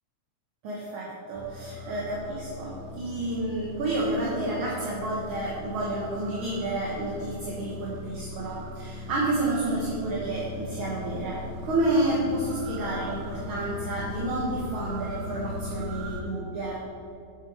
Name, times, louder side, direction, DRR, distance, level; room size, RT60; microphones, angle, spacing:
voice 1, 0.6-16.8, right 2 dB, 55° right, -5 dB, 1.6 m, -30 dB
sound 1, 1.3-16.2, left 2 dB, 80° right, 2.2 m, -39 dB
7.9 x 7.5 x 4.7 m, 2.6 s
omnidirectional pair, 3.4 m